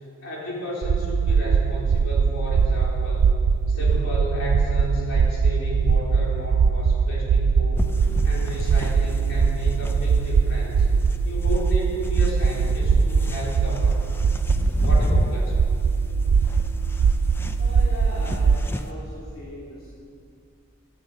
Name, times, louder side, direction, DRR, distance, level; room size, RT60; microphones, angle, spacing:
voice 1, 0.2-3.3 3.7-10.9 11.2-14.0 14.7-15.6, equal, 65° left, -5 dB, 4.3 m, -33 dB
sound 1, 0.8-18.7, right 5 dB, 85° right, 0.4 m, -21 dB
voice 2, 3.7-4.0 14.7-15.0 17.6-19.9, equal, 85° left, -7 dB, 2.8 m, -40 dB
sound 2, 7.8-18.9, left 1 dB, 10° left, 0.5 m, -31 dB
12.0 x 10.5 x 8.6 m, 2.5 s
head